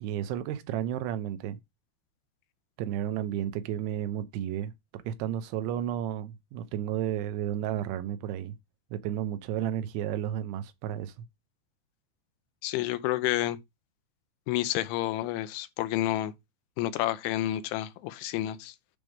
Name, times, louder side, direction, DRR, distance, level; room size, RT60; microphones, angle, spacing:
voice 1, 0.0-1.6 2.8-8.6 8.9-11.1, right 10 dB, 80° right, 3.2 m, -32 dB
voice 2, 12.6-13.6 14.5-16.3 16.8-18.8, left 14 dB, 85° left, 3.1 m, -29 dB
10.5 x 3.5 x 6.4 m
omnidirectional pair, 5.5 m